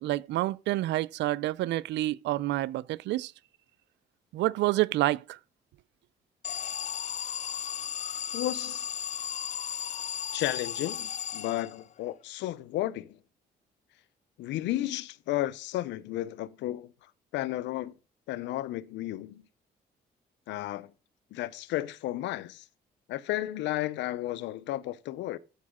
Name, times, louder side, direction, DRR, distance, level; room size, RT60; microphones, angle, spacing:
voice 1, 0.0-3.3 4.3-5.4, right 16 dB, 80° right, 0.5 m, -28 dB
Alarm, 6.4-12.0, left 9 dB, 40° left, 0.4 m, -35 dB
voice 2, 8.3-8.9 10.3-13.2 14.4-16.9 17.3-17.9 18.3-19.4 20.5-20.9 21.3-22.6 23.1-25.4, left 15 dB, 80° left, 0.7 m, -33 dB
13.5 x 4.8 x 3.7 m
supercardioid pair, 65°, 18 cm